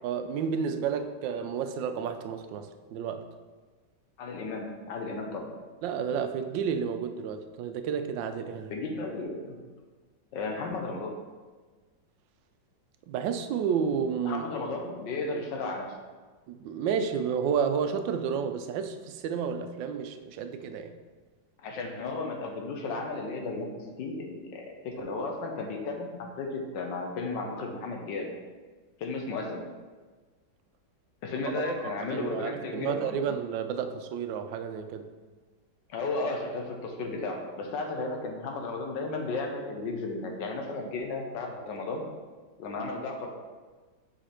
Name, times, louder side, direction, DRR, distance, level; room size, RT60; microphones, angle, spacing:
voice 1, 0.0-3.3 5.8-8.7 13.1-14.5 16.5-20.9 31.5-35.1, right 7 dB, 90° right, 8 dB, 1.3 m, -31 dB
voice 2, 4.2-5.5 8.7-9.6 10.3-11.2 14.2-15.9 21.6-28.3 29.0-29.6 31.2-33.2 35.9-42.0 42.6-43.3, left 3 dB, 80° left, 2 dB, 1.6 m, -34 dB
5.7 x 5.0 x 4.3 m, 1.4 s
omnidirectional pair, 2.0 m